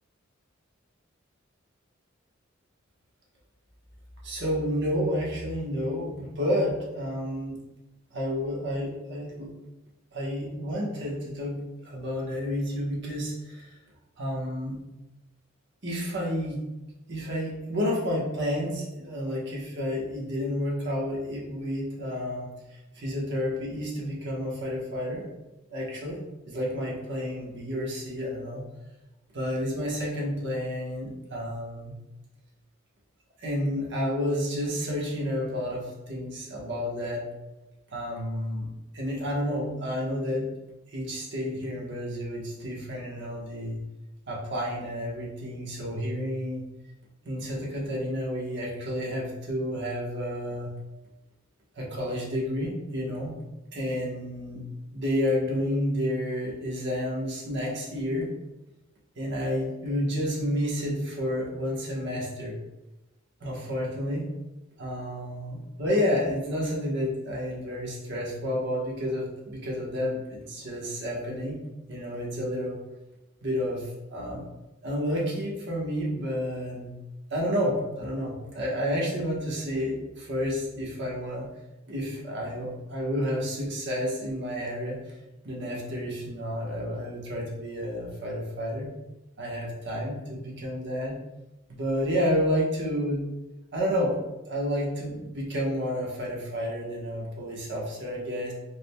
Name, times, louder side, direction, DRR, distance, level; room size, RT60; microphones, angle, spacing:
voice 1, 4.2-7.6 8.1-9.5 10.1-13.8 14.2-14.8 15.8-16.6 17.1-22.5 22.9-25.2 25.7-26.2 26.4-28.6 29.3-31.9 33.4-37.3 37.9-38.7 38.9-40.5 40.9-43.8 44.3-46.6 47.2-50.7 51.8-53.4 53.7-54.6 54.9-58.3 59.2-62.6 63.4-64.3 64.8-71.6 71.9-72.8 73.4-74.4 74.8-76.9 77.3-81.5 81.9-85.0 85.4-88.9 89.4-91.1 91.7-93.2 93.7-94.2 94.5-98.5, equal, 60° right, -4 dB, 1.2 m, -30 dB
4.8 x 3.4 x 2.3 m, 1.0 s
head